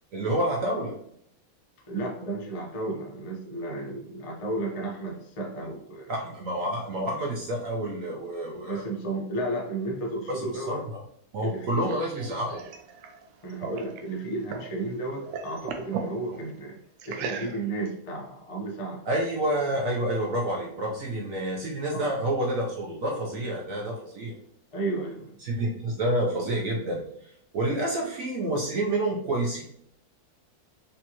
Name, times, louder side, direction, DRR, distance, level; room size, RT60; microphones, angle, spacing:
voice 1, 0.1-0.9 6.1-8.8 10.3-11.0 11.3-12.6 19.1-24.3 25.4-27.0 27.5-29.6, right 1 dB, 65° right, -1 dB, 0.8 m, -28 dB
voice 2, 1.9-6.1 8.5-10.8 11.4-11.9 12.3-12.5 13.4-16.8 17.0-19.0 21.9-22.1 24.7-25.3, right 2 dB, 55° left, -2 dB, 0.3 m, -33 dB
sound 1, 11.4-14.8 15.1-16.1 17.0-17.9, right 6 dB, 90° right, 1.3 m, -38 dB
5.3 x 2.8 x 2.9 m, 0.70 s
omnidirectional pair, 2.1 m